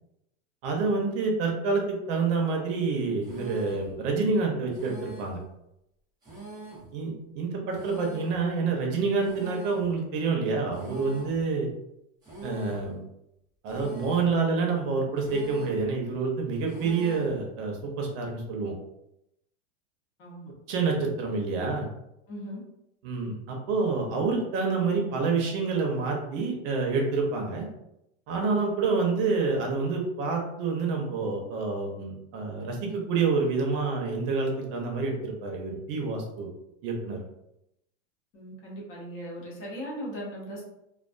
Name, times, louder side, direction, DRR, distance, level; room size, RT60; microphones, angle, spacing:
voice 1, 0.6-5.4 6.9-11.7 12.4-13.0 13.6-18.7 20.7-21.9 23.0-27.7 28.3-36.5 36.8-37.2, right 4 dB, 50° right, 1 dB, 0.7 m, -28 dB
sound 1, 3.2-3.9 4.7-5.4 6.2-6.9 7.7-8.4 9.2-9.9 10.7-11.4 12.2-12.9 13.7-14.4 15.2-15.9 16.7-17.4, right 2 dB, 10° right, 0.5 m, -43 dB
voice 2, 22.3-22.6 38.3-40.6, equal, 35° left, -3 dB, 0.7 m, -38 dB
2.3 x 2.2 x 2.4 m, 0.83 s
supercardioid pair, 160°, 37 cm